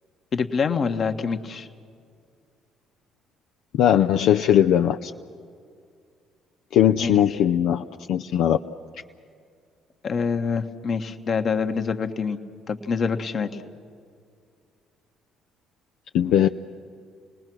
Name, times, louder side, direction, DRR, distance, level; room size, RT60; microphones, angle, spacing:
voice 1, 0.3-1.7 7.0-7.4 10.0-12.4 12.7-13.6, left 5 dB, 50° left, 7 dB, 1.4 m, -26 dB
voice 2, 3.7-5.1 6.7-8.6 16.1-16.5, left 10 dB, 70° left, 6 dB, 0.5 m, -19 dB
29.5 x 20.0 x 6.2 m, 2.2 s
hypercardioid pair, 55°, 0 cm